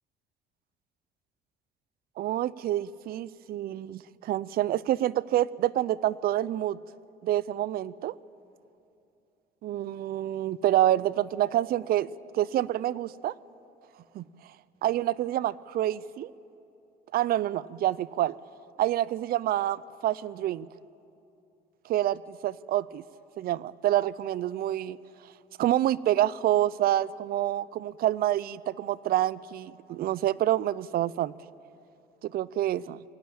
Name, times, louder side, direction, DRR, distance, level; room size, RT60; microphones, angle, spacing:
voice 1, 2.2-6.8 7.2-8.1 9.6-12.1 12.3-13.3 14.1-14.2 14.8-16.3 17.1-18.4 18.8-20.7 21.8-23.0 23.4-25.0 25.6-31.3 32.2-33.0, right 13 dB, 65° right, 20 dB, 0.6 m, -27 dB
23.5 x 18.0 x 8.7 m, 2.7 s
cardioid pair, 110°, 17 cm